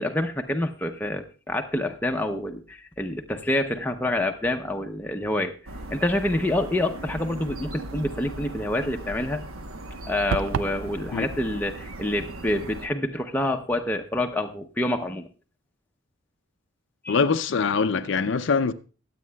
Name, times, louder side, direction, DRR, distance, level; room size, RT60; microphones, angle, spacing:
voice 1, 0.0-5.5 5.9-9.4 10.1-15.3 17.0-17.2, left 1 dB, 10° left, 0.6 m, -27 dB
sound 1, 5.7-12.9, right 1 dB, 90° right, 1.0 m, -38 dB
sound 2, 10.3-10.8, right 5 dB, 75° right, 0.4 m, -27 dB
voice 2, 17.1-18.7, left 5 dB, 60° left, 0.5 m, -23 dB
23.0 x 8.4 x 2.3 m
head